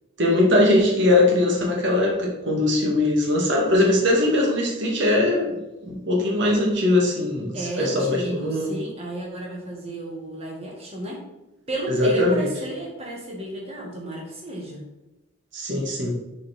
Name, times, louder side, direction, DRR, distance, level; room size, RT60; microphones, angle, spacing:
voice 1, 0.2-8.7 11.9-12.5 15.5-16.1, left 1 dB, 55° right, -1 dB, 1.7 m, -21 dB
voice 2, 7.5-11.2 11.7-14.8, equal, 30° right, -2 dB, 1.7 m, -33 dB
6.7 x 4.2 x 4.3 m, 1.0 s
head